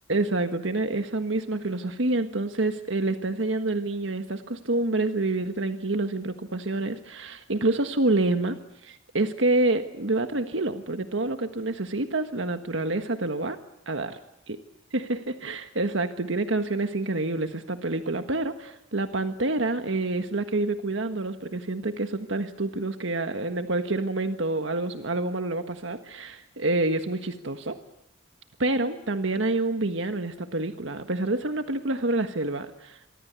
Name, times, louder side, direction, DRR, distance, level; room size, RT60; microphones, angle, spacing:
voice 1, 0.1-13.6 13.8-14.2 14.9-27.8 28.6-33.0, right 2 dB, 75° right, 8 dB, 1.5 m, -27 dB
27.5 x 24.5 x 8.2 m, 0.81 s
head